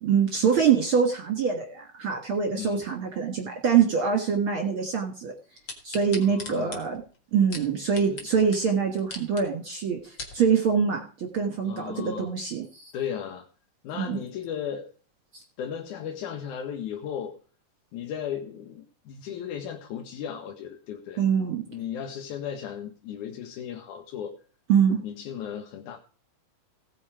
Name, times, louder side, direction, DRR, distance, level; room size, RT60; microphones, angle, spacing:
voice 1, 0.0-5.3 5.8-7.0 7.3-12.9 13.9-14.2 15.3-15.4 21.2-21.6 24.7-25.0, right 6 dB, 50° right, 2 dB, 2.0 m, -24 dB
voice 2, 2.5-2.9 6.1-6.9 8.1-8.2 11.6-12.3 12.9-13.5 13.8-14.9 15.6-17.3 17.9-21.2 21.7-24.4 25.0-26.0, left 8 dB, 70° left, 4 dB, 2.3 m, -35 dB
sound 1, 5.7-8.3 8.5-8.6 9.0-9.4 9.9-10.4 11.0-11.1, left 3 dB, 40° left, 2.2 m, -39 dB
17.0 x 7.3 x 4.8 m, 0.41 s
omnidirectional pair, 3.9 m